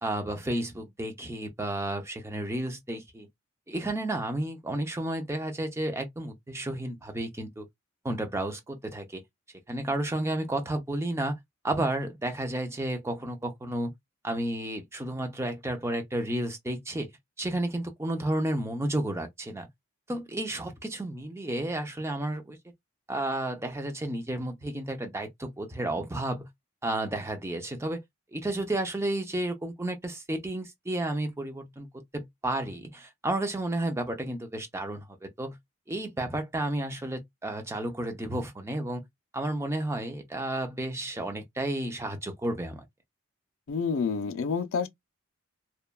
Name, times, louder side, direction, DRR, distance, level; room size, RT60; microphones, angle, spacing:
voice 1, 0.0-3.3 3.7-7.7 8.0-9.2 9.7-11.4 11.6-13.9 14.2-17.1 17.4-19.7 20.1-22.6 23.1-26.5 26.8-28.0 28.3-31.9 32.1-35.6 35.9-39.0 39.3-42.8, right 1 dB, 15° right, 0.5 m, -32 dB
voice 2, 43.7-44.9, left 5 dB, 70° left, 0.5 m, -28 dB
3.0 x 2.2 x 2.2 m
head